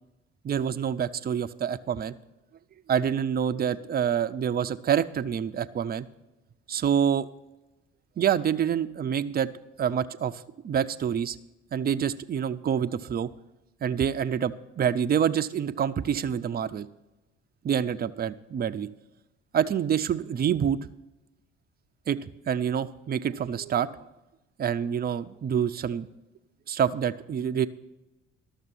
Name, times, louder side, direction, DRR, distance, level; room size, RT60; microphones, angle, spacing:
voice 1, 0.4-2.1 2.9-6.1 6.7-7.3 8.2-9.5 9.8-11.4 11.7-13.3 13.8-16.9 17.6-18.9 19.5-20.8 22.1-24.0 24.6-26.1 26.7-27.7, right 8 dB, 25° right, 12 dB, 0.5 m, -27 dB
12.0 x 6.6 x 5.9 m, 0.99 s
hypercardioid pair, 50°, 35 cm